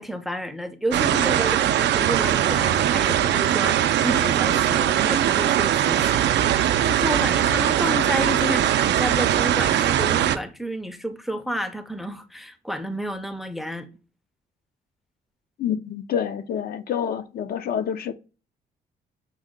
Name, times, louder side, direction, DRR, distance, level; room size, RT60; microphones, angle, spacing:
voice 1, 0.0-13.9, equal, ahead, 0.4 m, -31 dB
sound 1, 0.9-10.4, right 11 dB, 80° right, 0.4 m, -21 dB
voice 2, 15.6-18.1, left 8 dB, 60° left, 0.4 m, -27 dB
6.0 x 2.2 x 3.6 m
cardioid pair, 115°, 18 cm